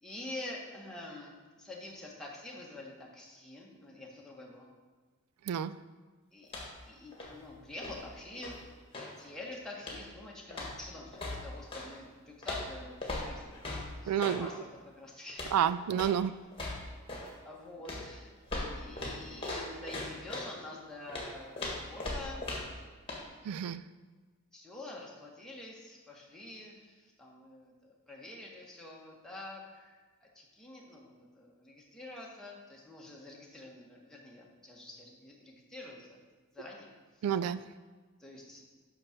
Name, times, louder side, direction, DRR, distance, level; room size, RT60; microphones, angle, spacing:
voice 1, 0.0-4.7 6.3-6.5 6.9-8.6 9.2-13.7 14.0-15.6 17.4-18.3 18.7-22.5 24.5-36.2 36.5-37.6 38.2-38.6, left 2 dB, 5° left, -3 dB, 1.3 m, -47 dB
sound 1, 6.4-6.9 7.1-9.2 9.8-10.2 10.5-11.9 12.4-14.4 15.3-15.6 15.9-16.2 16.5-17.3 17.9-20.5 21.1-22.8 23.1-23.2, left 2 dB, 25° left, 1.6 m, -39 dB
voice 2, 14.1-14.5 15.5-16.3 23.5-23.8 37.2-37.6, right 9 dB, 90° right, 15 dB, 0.3 m, -29 dB
6.5 x 5.8 x 6.5 m, 1.4 s
head